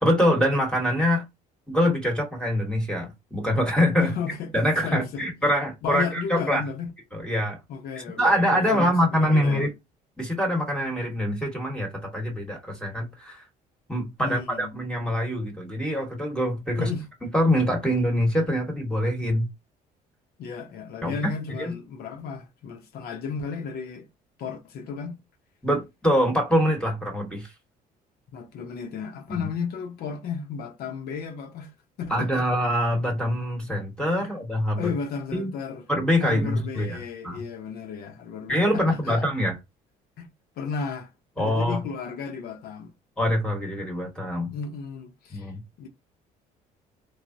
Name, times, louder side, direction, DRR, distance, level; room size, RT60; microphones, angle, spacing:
voice 1, 0.0-1.2 1.7-4.1 4.5-6.6 7.1-7.6 8.0-9.7 10.2-13.4 13.9-16.9 17.3-19.5 21.0-21.2 21.6-21.8 25.6-27.5 29.3-29.5 32.1-34.9 35.3-35.5 35.9-37.0 37.2-37.4 38.5-39.5 41.4-41.8 43.2-44.6 45.3-45.6, equal, 5° left, 1.0 m, -24 dB
voice 2, 4.0-4.5 4.8-5.2 5.8-6.9 7.7-9.7 14.2-14.7 16.8-17.1 20.4-24.1 24.4-25.2 28.3-31.7 32.0-32.5 34.2-34.3 34.8-35.9 36.2-39.3 40.2-40.3 40.6-41.1 41.4-42.9 44.5-45.5 45.8-45.9, left 6 dB, 65° left, 0.7 m, -34 dB
3.2 x 2.1 x 2.5 m
cardioid pair, 110°, 17 cm